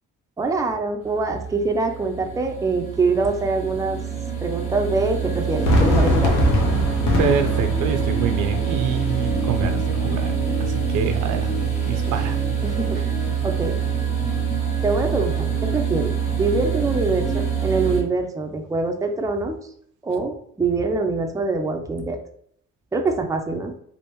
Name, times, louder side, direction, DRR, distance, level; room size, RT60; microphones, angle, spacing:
voice 1, 0.4-4.0 4.4-6.4 12.6-13.0 13.4-13.8 14.8-19.6 20.0-22.2 22.9-23.7, right 3 dB, 10° right, 4 dB, 0.5 m, -24 dB
sound 1, 1.0-18.0, right 6 dB, 20° left, 1.4 m, -25 dB
Fireworks, 5.6-10.7, left 2 dB, 75° left, 0.8 m, -23 dB
voice 2, 7.2-10.3 10.6-11.6 11.9-12.4, right 6 dB, 85° right, 6 dB, 0.6 m, -26 dB
3.4 x 2.5 x 2.9 m, 0.67 s
cardioid pair, 90°, 30 cm